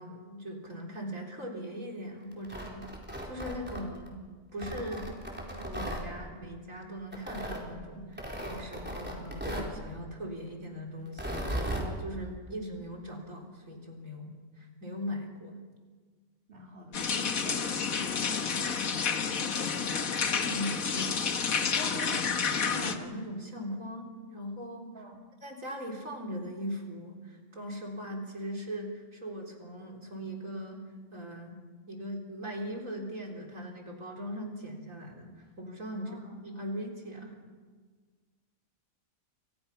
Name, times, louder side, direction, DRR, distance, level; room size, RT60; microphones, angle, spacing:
voice 1, 0.0-2.9 3.2-4.2 4.5-5.1 5.5-15.6 20.4-21.3 21.7-22.2 22.6-24.9 25.4-31.6 31.9-36.2 36.4-37.4, equal, 70° right, 0 dB, 4.4 m, -40 dB
Tearing, 2.3-4.1 4.6-6.0 7.1-7.6 8.2-9.7 11.1-11.9, right 1 dB, 5° right, 4.3 m, -36 dB
voice 2, 16.5-17.7 18.0-20.0 21.9-22.6 24.9-25.2 36.0-36.3, equal, 40° right, -1 dB, 3.2 m, -49 dB
sound 1, 16.9-23.0, left 6 dB, 75° left, 1.8 m, -30 dB
29.0 x 25.5 x 5.8 m, 1.5 s
omnidirectional pair, 1.5 m